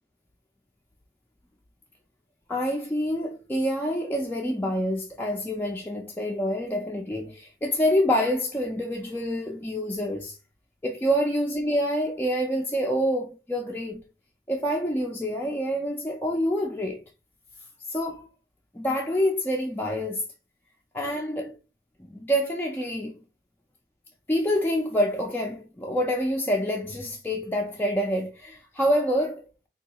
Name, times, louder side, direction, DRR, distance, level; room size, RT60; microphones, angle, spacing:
voice 1, 2.5-10.3 10.8-14.0 14.5-17.0 17.9-18.3 18.7-20.2 20.9-21.5 22.1-23.1 24.3-29.7, equal, 10° left, 0.3 m, -27 dB
3.8 x 2.2 x 2.8 m
head